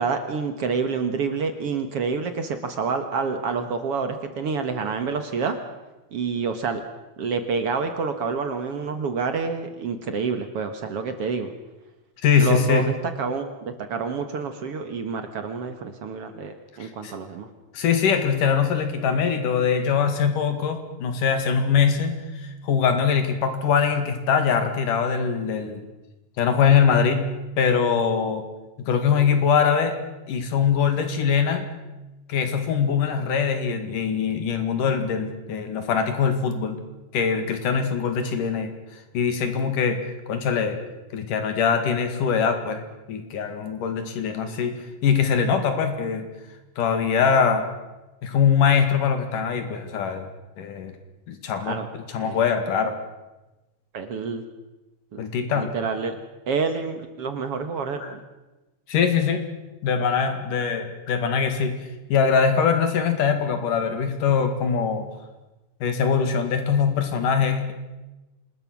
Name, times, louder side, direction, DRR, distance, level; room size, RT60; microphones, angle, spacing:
voice 1, 0.0-5.6 6.1-6.8 7.2-11.5 12.4-17.5 51.6-51.9 52.2-52.5 53.9-54.4 55.1-55.2 55.5-56.2 56.5-58.2, right 5 dB, 55° right, 8 dB, 2.1 m, -28 dB
voice 2, 12.2-12.9 16.8-17.1 17.7-25.9 26.4-27.3 27.6-28.5 28.9-30.0 30.3-31.7 32.3-36.8 37.1-38.7 39.1-40.0 40.3-40.8 41.1-42.8 43.1-46.3 46.8-47.7 48.2-50.3 50.6-50.9 51.3-51.8 52.1-52.9 55.2-55.7 58.0-58.1 58.9-59.4 59.8-61.8 62.1-65.1 65.8-67.7, left 6 dB, 75° left, 7 dB, 3.7 m, -22 dB
26.0 x 20.5 x 6.2 m, 1.1 s
omnidirectional pair, 3.7 m